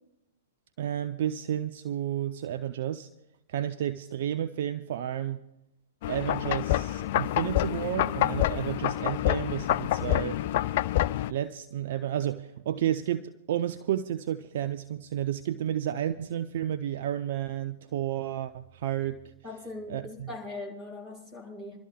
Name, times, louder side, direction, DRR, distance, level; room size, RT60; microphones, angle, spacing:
voice 1, 0.8-3.1 3.5-5.5 6.1-10.4 11.3-19.2 19.9-20.3, right 11 dB, 55° right, 0.5 m, -31 dB
sound 1, 6.0-11.3, left 14 dB, 50° left, 0.4 m, -27 dB
voice 2, 19.4-21.8, left 2 dB, 20° right, 5.8 m, -40 dB
27.5 x 12.5 x 2.3 m
figure-of-eight pair, 110°, 0 cm